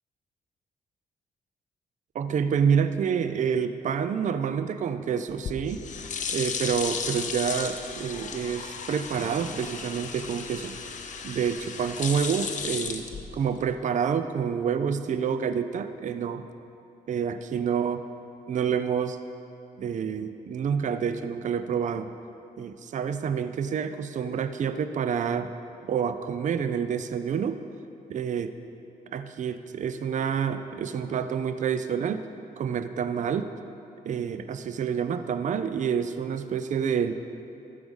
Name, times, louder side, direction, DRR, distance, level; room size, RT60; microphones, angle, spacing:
voice 1, 2.1-5.8 6.3-10.8 11.2-13.0 13.3-16.4 17.1-18.0 18.5-19.2 19.8-22.1 22.6-25.5 25.8-27.6 28.1-28.5 29.1-32.3 32.6-33.5 34.0-37.2, right 7 dB, 50° right, 10 dB, 0.5 m, -28 dB
sound 1, 5.3-13.7, left 6 dB, 50° left, 0.7 m, -35 dB
13.0 x 5.0 x 5.3 m, 2.7 s
cardioid pair, 105°, 16 cm